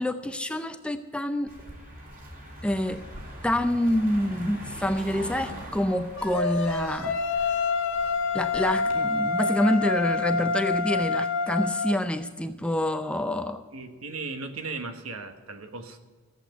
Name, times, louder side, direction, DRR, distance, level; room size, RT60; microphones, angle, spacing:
voice 1, 0.0-1.5 2.6-3.0 3.4-7.5 8.3-13.6, left 1 dB, 5° left, 8 dB, 0.5 m, -27 dB
Car passing by, 1.5-9.0, equal, 40° right, 3.1 m, -42 dB
sound 1, 6.2-11.9, left 4 dB, 60° left, 1.2 m, -27 dB
voice 2, 13.7-16.0, right 3 dB, 75° right, 7 dB, 1.4 m, -37 dB
14.0 x 7.9 x 9.0 m, 1.5 s
head